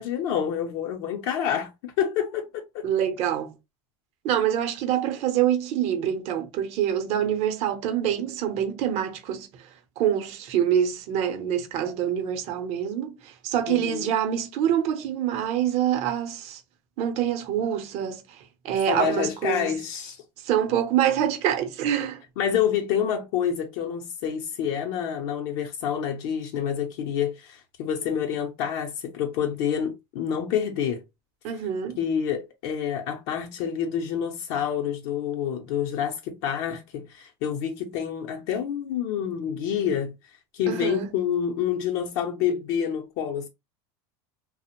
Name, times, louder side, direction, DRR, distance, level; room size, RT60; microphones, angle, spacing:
voice 1, 0.0-2.9 13.7-14.1 18.9-20.2 22.4-31.0 32.0-40.1 40.5-43.5, left 8 dB, 70° left, 0.6 m, -28 dB
voice 2, 2.8-3.5 4.2-9.5 10.0-16.6 17.0-19.8 20.4-22.2 31.4-32.0 40.7-41.1, right 10 dB, 55° right, 0.7 m, -26 dB
2.4 x 2.0 x 2.9 m
supercardioid pair, 120°, 13 cm